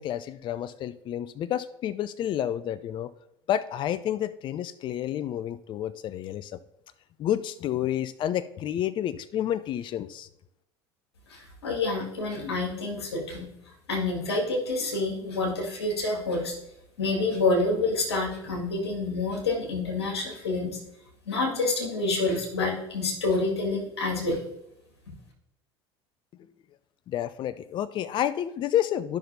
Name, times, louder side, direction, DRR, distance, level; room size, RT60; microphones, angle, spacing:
voice 1, 0.0-3.1 3.5-6.5 7.2-10.3 27.1-29.2, left 11 dB, 35° left, 15 dB, 0.4 m, -30 dB
voice 2, 11.3-13.5 13.9-16.6 17.0-20.8 21.3-24.4, left 3 dB, 80° left, -1 dB, 2.0 m, -28 dB
12.5 x 5.7 x 2.7 m, 0.83 s
figure-of-eight pair, 70°, 13 cm